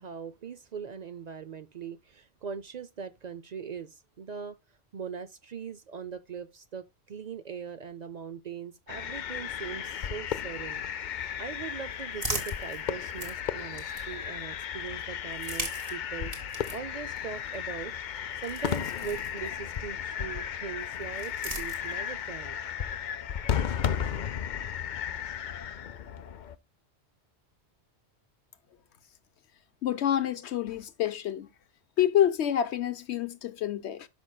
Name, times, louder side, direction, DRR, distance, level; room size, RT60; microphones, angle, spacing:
voice 1, 0.0-4.6 4.9-10.8 11.4-17.9 18.4-22.6, right 6 dB, 50° right, 0.5 m, -41 dB
sound 1, 8.9-26.6, left 8 dB, 55° left, 0.6 m, -34 dB
sound 2, 11.4-14.4 15.2-19.8 20.8-22.3, right 1 dB, 35° right, 2.0 m, -41 dB
voice 2, 29.8-31.5 32.0-34.1, left 10 dB, 75° left, 1.1 m, -27 dB
12.5 x 5.5 x 2.2 m
omnidirectional pair, 1.1 m